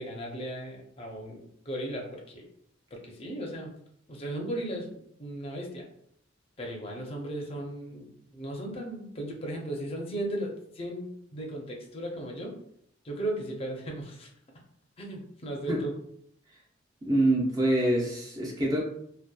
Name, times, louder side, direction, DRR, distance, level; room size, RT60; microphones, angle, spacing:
voice 1, 0.0-2.5 2.9-3.7 4.1-5.9 6.6-12.6 13.0-14.3 15.0-15.9, right 1 dB, 30° left, 0 dB, 0.5 m, -36 dB
voice 2, 17.0-18.8, right 1 dB, 20° right, -3 dB, 0.5 m, -25 dB
2.7 x 2.1 x 2.2 m, 0.69 s
head